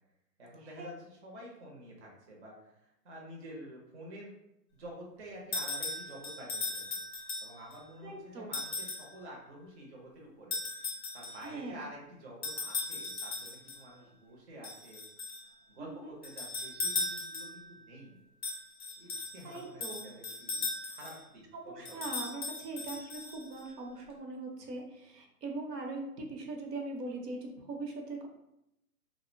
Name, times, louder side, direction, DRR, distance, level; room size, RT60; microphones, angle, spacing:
voice 1, 0.4-4.4 4.7-15.0 15.7-18.2 19.0-22.1, equal, 45° right, -2 dB, 0.6 m, -49 dB
sound 1, 5.5-7.8 8.5-9.1 10.5-11.5 12.4-13.8 14.6-15.5 16.2-17.7 18.4-21.2 21.9-23.6, left 3 dB, 45° left, 0.5 m, -38 dB
voice 2, 8.0-8.5 11.4-11.8 15.8-16.2 19.4-20.1 21.5-28.3, right 2 dB, 75° right, 1 dB, 0.8 m, -41 dB
2.5 x 2.1 x 2.5 m, 0.83 s
hypercardioid pair, 165°, 49 cm